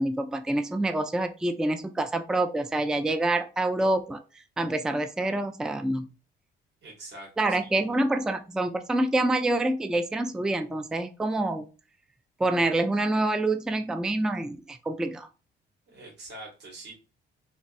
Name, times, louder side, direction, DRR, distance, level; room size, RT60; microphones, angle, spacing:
voice 1, 0.0-4.2 4.6-6.1 7.4-11.7 12.4-15.3, right 2 dB, 5° right, 9 dB, 0.3 m, -26 dB
voice 2, 6.8-7.8 15.9-16.9, right 2 dB, 60° right, -3 dB, 1.8 m, -44 dB
3.3 x 2.9 x 2.5 m, 0.33 s
cardioid pair, 90°, 20 cm